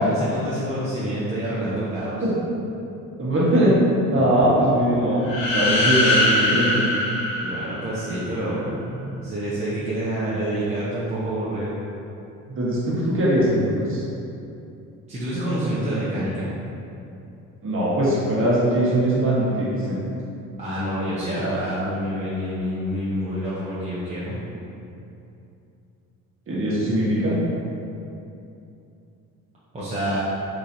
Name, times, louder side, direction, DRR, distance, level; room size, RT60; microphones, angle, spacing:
voice 1, 0.0-2.2 7.4-11.8 15.1-16.5 20.6-24.4 29.7-30.2, right 1 dB, 20° right, -10 dB, 0.7 m, -27 dB
voice 2, 3.2-3.7 4.1-6.8 12.5-14.0 17.6-19.9 26.5-27.3, right 1 dB, 40° right, -8 dB, 1.2 m, -21 dB
sound 1, 5.2-8.1, left 1 dB, 75° left, 0.9 m, -22 dB
3.8 x 3.0 x 2.7 m, 2.7 s
supercardioid pair, 85°, 33 cm